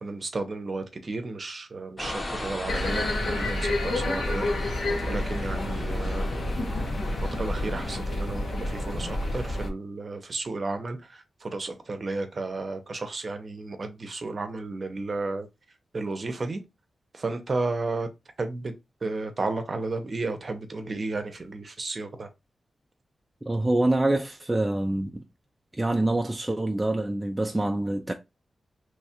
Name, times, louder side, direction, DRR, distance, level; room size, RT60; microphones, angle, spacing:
voice 1, 0.0-4.5 5.1-6.3 7.3-15.5 15.9-16.6 17.1-18.1 18.4-18.7 19.0-22.3, right 3 dB, 40° right, 0.7 m, -33 dB
sound 1, 2.0-8.0, left 1 dB, 30° left, 0.9 m, -37 dB
sound 2, 2.7-9.7, left 1 dB, 65° left, 1.0 m, -29 dB
voice 2, 23.5-25.2 25.8-28.1, right 1 dB, 15° right, 0.4 m, -25 dB
3.1 x 2.4 x 4.3 m
wide cardioid pair, 135°, 0 cm